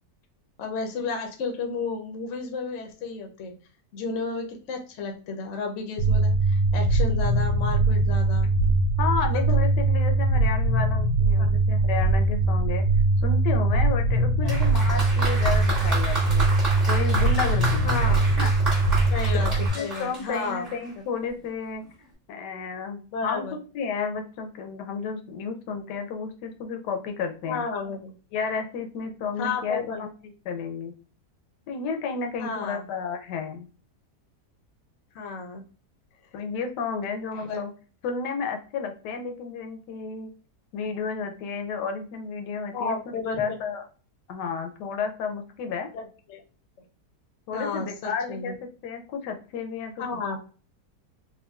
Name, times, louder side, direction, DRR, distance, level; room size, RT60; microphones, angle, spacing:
voice 1, 0.6-3.5 3.9-8.5 9.2-9.4 11.4-11.5 14.4-14.5 17.8-18.2 19.1-20.6 23.1-23.6 27.5-28.1 29.4-30.1 32.4-32.8 35.1-35.6 37.3-37.6 42.7-43.6 45.9-46.4 47.5-48.5 50.0-50.4, left 4 dB, 65° left, 3 dB, 0.8 m, -32 dB
sound 1, 6.0-19.7, right 2 dB, 75° right, 1.2 m, -22 dB
voice 2, 9.0-12.8 13.2-16.5 16.9-17.9 18.4-18.5 19.3-21.8 22.3-27.6 28.3-30.9 31.7-33.7 36.3-37.7 38.0-40.3 40.7-43.0 43.4-43.8 44.3-45.9 47.5-50.2, left 5 dB, 80° left, 5 dB, 1.2 m, -32 dB
Applause, 14.5-20.9 21.8-21.9, right 3 dB, 25° right, 1.1 m, -32 dB
3.6 x 2.2 x 2.2 m, 0.37 s
omnidirectional pair, 1.8 m